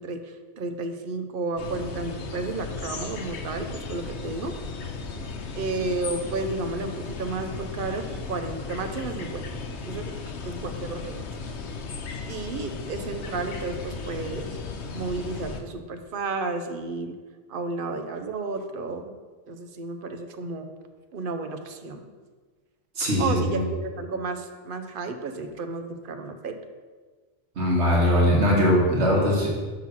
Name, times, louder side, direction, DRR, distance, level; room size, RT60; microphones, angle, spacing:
voice 1, 0.0-4.6 5.5-9.5 9.9-10.2 10.4-11.2 12.3-14.6 14.9-17.2 17.5-19.1 19.5-20.7 21.1-22.1 23.2-26.6, right 3 dB, 60° right, 7 dB, 0.8 m, -32 dB
sound 1, 1.6-15.6, left 4 dB, 85° left, 1.0 m, -36 dB
voice 2, 23.0-23.6 27.6-29.5, equal, 90° right, -3 dB, 1.8 m, -21 dB
6.1 x 3.9 x 5.8 m, 1.4 s
omnidirectional pair, 1.1 m